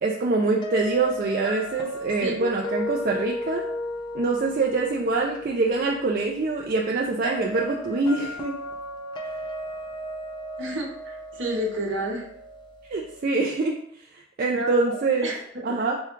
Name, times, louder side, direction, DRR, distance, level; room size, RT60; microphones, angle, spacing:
voice 1, 0.0-3.6 4.1-8.5 12.9-13.7 14.4-15.3 15.6-16.0, right 3 dB, 45° right, -2 dB, 0.3 m, -24 dB
sound 1, 0.6-13.5, equal, 25° left, 0.4 m, -36 dB
voice 2, 10.6-12.3 14.5-15.6, right 1 dB, 65° right, 0 dB, 0.9 m, -30 dB
3.5 x 2.3 x 4.4 m, 0.67 s
head